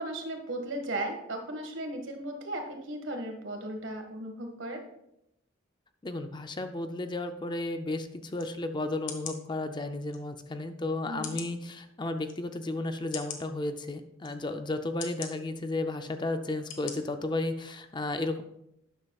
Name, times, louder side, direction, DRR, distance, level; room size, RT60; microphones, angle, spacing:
voice 1, 0.0-4.9 11.0-11.4, right 1 dB, 70° right, 4 dB, 1.7 m, -36 dB
voice 2, 6.0-18.4, left 2 dB, 25° left, 8 dB, 0.5 m, -33 dB
sound 1, 8.4-8.5 9.1-9.4 10.1-10.2 11.2-11.5 12.2-12.3 13.1-13.4 14.2-14.3 15.0-15.3 16.0-16.2 16.7-16.9 17.4-17.5, left 8 dB, 70° left, 1.3 m, -40 dB
12.0 x 9.7 x 2.4 m, 0.82 s
head